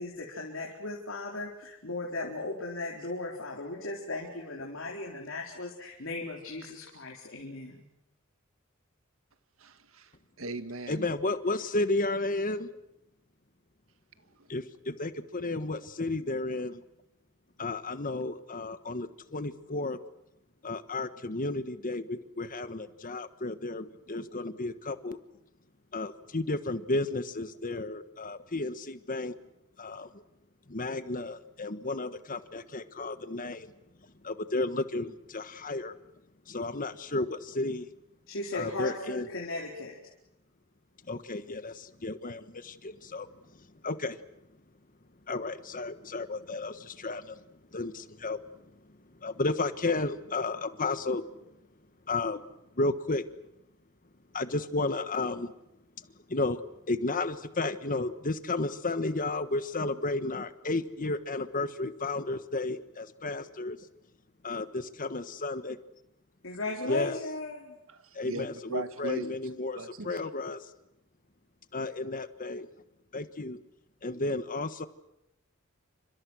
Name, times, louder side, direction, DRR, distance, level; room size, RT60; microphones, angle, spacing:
voice 1, 0.0-7.9 38.3-40.0 66.4-67.8, left 2 dB, 65° left, 4.2 m, -37 dB
voice 2, 9.6-10.1 10.4-11.1 14.3-14.5 67.9-70.2, right 2 dB, 75° right, 1.8 m, -40 dB
voice 3, 10.9-12.7 14.5-16.8 17.6-20.0 20.6-25.2 25.9-29.3 29.8-30.2 30.7-33.7 34.2-35.9 36.5-37.9 38.5-39.2 41.1-43.3 43.8-44.2 45.3-47.4 47.7-48.4 49.2-51.2 52.1-52.4 52.8-53.2 54.3-55.5 56.3-56.6 56.9-63.8 64.4-65.7 66.9-67.2 68.1-69.8 70.0-70.6 71.7-72.7 73.1-73.6 74.0-74.9, left 2 dB, 40° left, 1.4 m, -32 dB
29.5 x 26.0 x 6.4 m
head